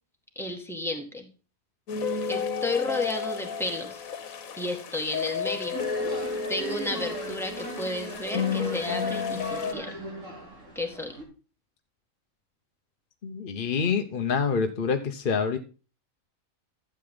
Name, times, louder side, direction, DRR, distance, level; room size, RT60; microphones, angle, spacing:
voice 1, 0.4-1.3 2.3-4.0 4.6-5.8 6.5-9.9 10.8-11.1, left 2 dB, ahead, 2 dB, 1.9 m, -32 dB
sound 1, 1.9-9.7, left 5 dB, 75° left, 1.5 m, -32 dB
sound 2, 5.7-11.2, right 1 dB, 60° right, 3.3 m, -39 dB
voice 2, 13.2-15.6, left 5 dB, 45° left, 6 dB, 0.9 m, -26 dB
12.0 x 7.9 x 3.7 m, 0.34 s
omnidirectional pair, 1.5 m